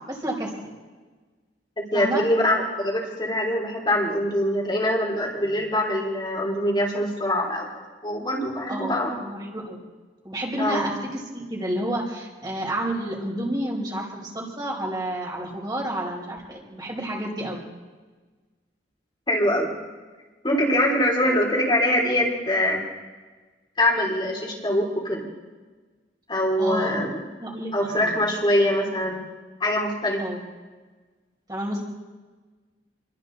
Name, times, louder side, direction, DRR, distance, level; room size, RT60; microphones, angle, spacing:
voice 1, 0.1-0.5 1.9-2.2 8.7-9.8 10.2-17.6 26.6-27.0 27.4-28.2 30.1-30.4 31.5-31.8, right 1 dB, 25° right, -2 dB, 4.8 m, -30 dB
voice 2, 1.8-7.7 8.0-9.2 10.6-10.9 19.3-19.7 20.4-22.8 23.8-25.3 26.3-27.2 27.7-29.2 29.6-30.2, left 1 dB, 25° left, -3 dB, 3.5 m, -23 dB
28.0 x 22.5 x 4.0 m, 1.3 s
head